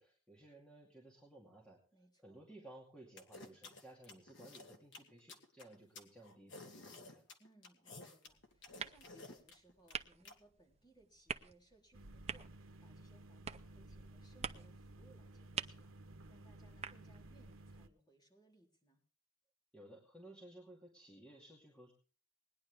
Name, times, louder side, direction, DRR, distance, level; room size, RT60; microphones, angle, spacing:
voice 1, 0.0-1.8 2.2-7.3 19.7-21.9, right 1 dB, 5° left, -2 dB, 2.4 m, -57 dB
voice 2, 1.9-2.5 7.4-19.0, right 2 dB, 20° left, -1 dB, 3.9 m, -68 dB
sound 1, 3.2-10.3, left 3 dB, 65° left, 1.8 m, -53 dB
sound 2, 8.3-17.9, right 6 dB, 30° right, 0.6 m, -49 dB
sound 3, 11.9-17.9, right 1 dB, 90° right, 1.1 m, -55 dB
20.0 x 10.5 x 3.6 m, 0.40 s
head